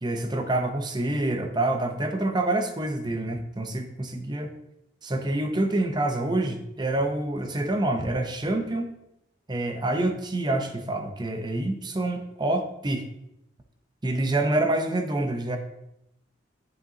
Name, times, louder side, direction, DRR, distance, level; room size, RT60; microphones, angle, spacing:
voice 1, 0.0-4.5 5.0-8.9 9.5-13.1 14.0-15.6, right 2 dB, 25° right, 5 dB, 0.7 m, -27 dB
7.9 x 7.7 x 2.8 m, 0.82 s
head